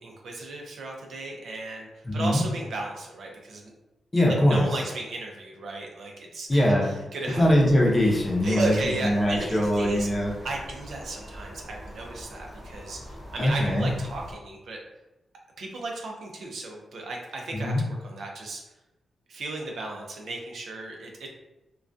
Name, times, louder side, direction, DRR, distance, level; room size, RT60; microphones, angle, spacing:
voice 1, 0.0-3.7 4.3-6.5 7.1-7.4 8.4-10.1 10.4-14.8 15.6-18.6 19.3-21.3, right 2 dB, 70° right, 0 dB, 0.5 m, -35 dB
voice 2, 2.0-2.4 4.1-4.6 6.5-6.9 7.4-8.8 9.0-10.3 13.4-13.9 17.5-17.8, left 1 dB, 20° left, -3 dB, 0.6 m, -22 dB
sound 1, 7.3-14.4, equal, 5° right, 0.9 m, -43 dB
2.3 x 2.2 x 2.5 m, 0.98 s
wide cardioid pair, 115°, 0 cm